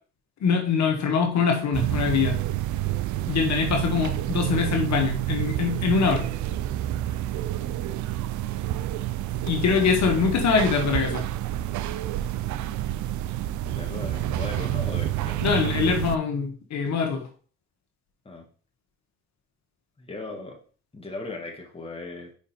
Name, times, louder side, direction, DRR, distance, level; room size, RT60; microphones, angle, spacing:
voice 1, 0.4-2.4 3.3-6.2 9.4-11.2 15.4-17.2, left 6 dB, 65° left, 3 dB, 1.4 m, -23 dB
sound 1, 1.7-16.2, right 13 dB, 75° right, 0.5 m, -28 dB
voice 2, 13.6-15.5 18.3-18.5 20.0-20.6 20.9-22.3, left 2 dB, 20° left, 1 dB, 1.8 m, -37 dB
5.2 x 5.1 x 4.3 m, 0.42 s
cardioid pair, 90°, 30 cm